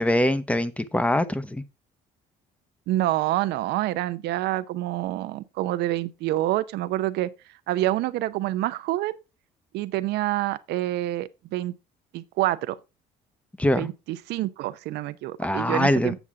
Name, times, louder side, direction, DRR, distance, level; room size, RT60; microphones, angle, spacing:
voice 1, 0.0-1.6 13.6-13.9 15.4-16.1, left 1 dB, 10° left, 0.9 m, -23 dB
voice 2, 2.9-7.3 7.7-9.2 9.7-11.7 12.1-12.8 13.7-16.2, right 15 dB, 85° right, 0.8 m, -27 dB
8.1 x 7.2 x 3.5 m
cardioid pair, 110°, 17 cm